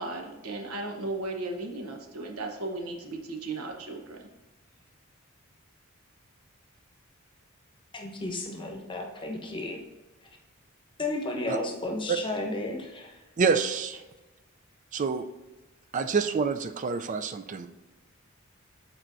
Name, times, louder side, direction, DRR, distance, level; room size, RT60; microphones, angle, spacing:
voice 1, 0.0-4.3, right 2 dB, 85° right, 2 dB, 1.0 m, -36 dB
voice 2, 7.9-9.8 11.0-13.1, left 2 dB, 25° left, 2 dB, 1.0 m, -33 dB
voice 3, 13.4-14.0 14.9-15.2 15.9-17.7, right 5 dB, 35° right, 9 dB, 0.4 m, -27 dB
12.0 x 4.4 x 2.6 m, 1.1 s
head